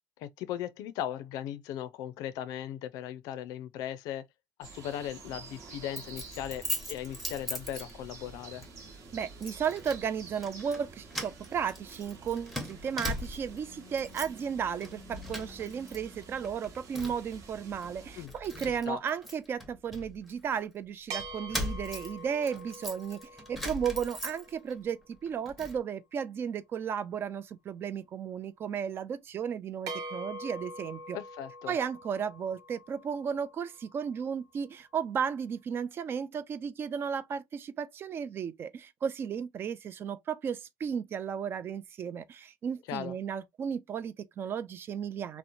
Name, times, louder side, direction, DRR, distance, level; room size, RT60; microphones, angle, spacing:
voice 1, 0.2-4.2 4.6-8.7 18.2-18.3 18.7-19.0 31.1-31.8 42.9-43.2, left 11 dB, 80° left, 0.4 m, -38 dB
sound 1, 4.6-18.3, right 3 dB, 55° right, 1.0 m, -49 dB
Keys jangling, 6.0-8.3 8.6-8.8 9.4-10.0 10.3-10.8 11.1-13.6 13.9-14.5 14.8-16.0 16.2-17.3 17.8-17.9 18.3-20.6 21.2-24.7 25.1-25.8, left 1 dB, ahead, 0.8 m, -39 dB
voice 2, 9.1-31.2 31.7-45.4, right 7 dB, 35° right, 0.3 m, -34 dB
sound 2, 21.1-24.8 29.9-34.2, right 2 dB, 80° right, 1.0 m, -44 dB
2.9 x 2.0 x 2.5 m
cardioid pair, 135°, 6 cm